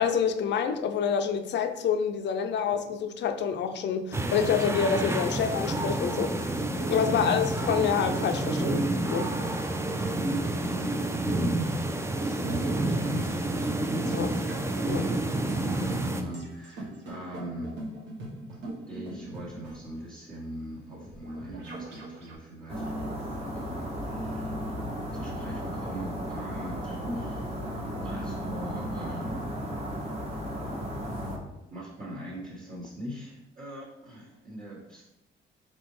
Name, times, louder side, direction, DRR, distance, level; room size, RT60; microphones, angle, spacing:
voice 1, 0.0-6.5 6.9-9.3 14.1-14.3 14.9-15.1, left 7 dB, 60° left, 7 dB, 0.5 m, -27 dB
sound 1, 4.1-16.2, right 2 dB, 15° right, 0.4 m, -29 dB
voice 2, 7.1-7.4 9.9-11.5 12.2-14.4 14.8-17.8 18.5-18.6 18.9-24.8 25.1-27.6 28.0-29.5 31.7-35.0, right 1 dB, 45° right, -10 dB, 1.5 m, -41 dB
sound 2, 12.2-22.4, right 1 dB, 70° right, 1.2 m, -42 dB
sound 3, 22.7-31.4, equal, 30° right, 1.1 m, -34 dB
4.2 x 3.5 x 3.1 m, 0.93 s
cardioid pair, 90°, 20 cm